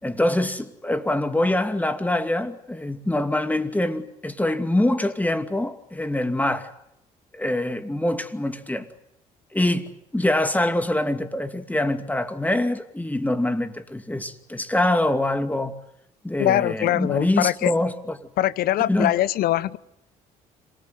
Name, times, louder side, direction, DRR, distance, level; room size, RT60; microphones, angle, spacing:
voice 1, 0.0-6.7 7.3-8.9 9.5-15.8 16.2-18.2 18.9-19.1, left 1 dB, 10° left, 2.6 m, -24 dB
voice 2, 16.4-17.7 18.4-19.8, left 13 dB, 70° left, 1.0 m, -22 dB
27.0 x 19.0 x 9.6 m
supercardioid pair, 65°, 16 cm